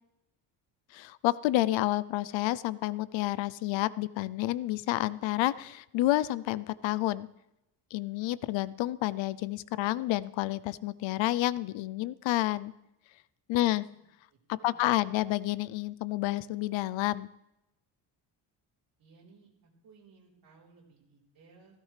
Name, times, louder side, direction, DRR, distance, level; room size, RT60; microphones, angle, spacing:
voice 1, 0.9-7.3 7.9-12.7 13.5-13.8 14.5-17.3, left 16 dB, 80° left, 18 dB, 0.6 m, -29 dB
voice 2, 13.5-13.9 14.3-15.2 19.0-19.5 19.8-21.8, right 4 dB, 50° right, -3 dB, 4.0 m, -59 dB
16.0 x 14.5 x 3.3 m, 0.88 s
cardioid pair, 180°, 45 cm